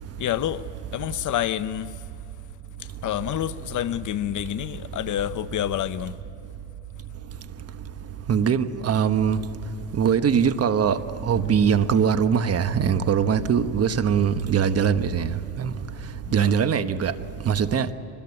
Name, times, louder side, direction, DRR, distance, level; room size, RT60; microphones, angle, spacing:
voice 1, 0.2-2.1 2.8-6.2 16.3-16.6, left 12 dB, 40° left, 0.7 m, -28 dB
voice 2, 8.3-9.4 9.9-11.0 11.2-15.7 16.3-17.1 17.5-17.9, right 7 dB, 30° right, 1.2 m, -21 dB
24.0 x 21.0 x 9.8 m
supercardioid pair, 115°, 48 cm